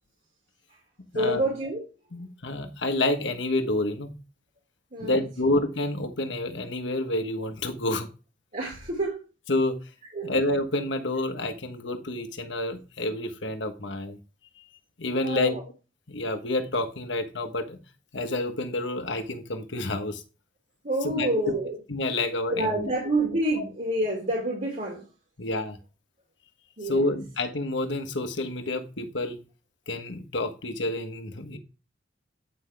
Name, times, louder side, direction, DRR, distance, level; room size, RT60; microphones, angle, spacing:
voice 1, 1.1-1.8 4.9-5.2 8.5-9.2 10.1-10.3 15.1-15.6 20.8-21.8 22.5-25.1 26.8-27.2, right 1 dB, 45° right, -1 dB, 2.1 m, -28 dB
voice 2, 2.1-4.1 5.0-8.1 9.5-9.8 10.2-14.2 15.0-15.6 16.1-17.8 18.1-20.2 21.0-21.5 21.9-22.9 25.4-25.8 26.9-29.4 29.9-31.6, left 2 dB, 70° left, 7 dB, 1.3 m, -28 dB
8.9 x 5.8 x 3.4 m, 0.32 s
head